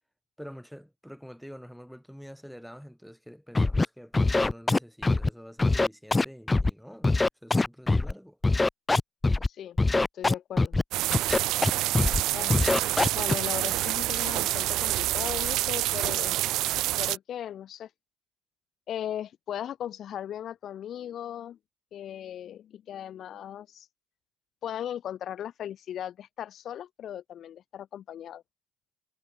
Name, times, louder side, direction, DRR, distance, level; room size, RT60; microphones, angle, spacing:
voice 1, 0.4-8.4, equal, ahead, 7.9 m, -47 dB
Scratching (performance technique), 3.5-3.9 4.1-5.3 5.6-6.7 7.0-8.1 8.4-9.5 9.8-10.8 11.1-11.7 11.9-12.2 12.5-13.3, left 3 dB, 20° left, 1.0 m, -23 dB
voice 2, 9.4-9.8 10.1-10.8 12.3-12.6 13.1-16.4 17.0-17.9 18.9-21.6 21.9-23.9 24.6-28.4, left 10 dB, 50° left, 3.5 m, -37 dB
sound 1, 10.9-17.2, right 16 dB, 60° right, 0.5 m, -27 dB
hypercardioid pair, 60°, 0 cm